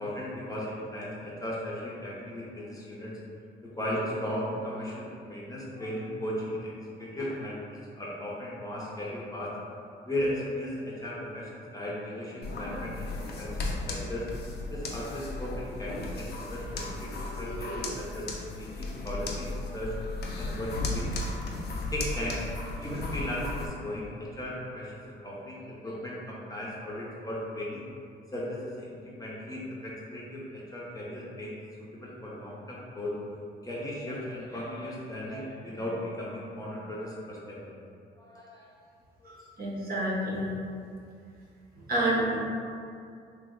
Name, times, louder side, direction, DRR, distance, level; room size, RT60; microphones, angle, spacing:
voice 1, 0.0-3.1 3.8-7.6 8.0-9.5 10.0-14.3 14.7-17.1 17.4-18.3 18.6-20.0 20.4-21.4 21.9-22.5 22.8-27.8 28.3-31.5 31.9-33.1 33.6-37.8 38.2-38.7, left 1 dB, 15° left, -6 dB, 0.7 m, -36 dB
sound 1, 12.4-23.7, left 2 dB, 55° left, 0.5 m, -35 dB
voice 2, 39.2-40.5 41.9-42.4, right 1 dB, 45° right, -6 dB, 0.9 m, -29 dB
3.0 x 2.0 x 3.6 m, 2.4 s
cardioid pair, 90°, 20 cm